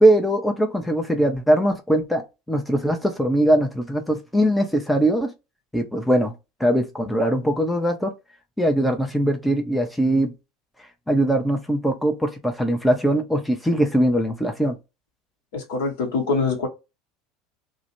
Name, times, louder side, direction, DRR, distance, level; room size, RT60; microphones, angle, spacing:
voice 1, 0.0-5.3 5.7-6.3 6.6-8.1 8.6-10.3 11.1-14.8, right 1 dB, 5° left, 0.5 m, -21 dB
voice 2, 15.5-16.7, left 4 dB, 60° left, 0.9 m, -24 dB
2.3 x 2.1 x 2.9 m
figure-of-eight pair, 70°, 0 cm